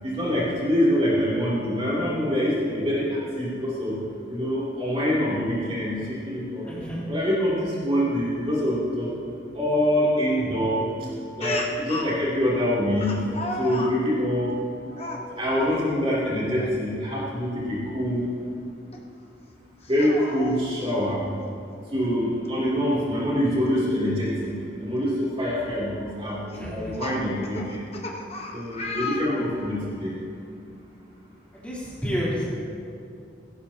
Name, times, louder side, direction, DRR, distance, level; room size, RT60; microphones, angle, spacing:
voice 1, 0.0-4.0 4.3-6.7 7.1-9.1 9.5-10.9 11.4-14.6 15.3-18.3 19.9-21.3 21.9-27.9 28.5-30.1, equal, 30° right, -7 dB, 3.0 m, -25 dB
voice 2, 6.7-7.0 26.6-26.9 31.5-32.4, equal, 5° left, -9 dB, 3.5 m, -30 dB
Speech, 11.4-12.2 13.0-14.0 14.9-15.2 16.5-16.7 17.2-17.3 18.9-19.0 19.8-20.7 22.0-22.1 22.5-22.6 24.4-24.5 25.2-25.4 26.5-29.8, left 2 dB, 30° left, 1.1 m, -33 dB
17.5 x 17.0 x 2.9 m, 2.6 s
head